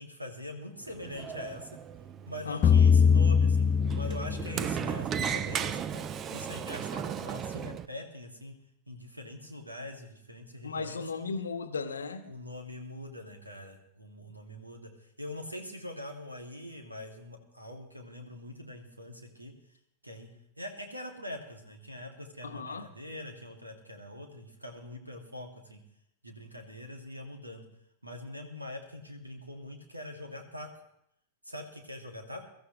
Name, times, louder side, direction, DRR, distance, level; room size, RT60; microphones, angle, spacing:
voice 1, 0.0-1.7 2.3-3.7 3.9-8.6 8.9-11.0 12.2-19.5 20.0-20.3 20.6-25.8 26.2-27.6 28.0-30.7 31.4-32.4, left 1 dB, 85° right, 3 dB, 2.2 m, -43 dB
Sliding door, 0.8-7.9, right 8 dB, 30° right, 0.6 m, -36 dB
voice 2, 2.4-2.8 10.6-12.3 22.4-22.9, left 4 dB, 70° left, 9 dB, 1.1 m, -36 dB
sound 1, 2.6-4.8, left 6 dB, 30° left, 0.5 m, -22 dB
23.0 x 14.0 x 3.1 m, 0.74 s
figure-of-eight pair, 90°, 0 cm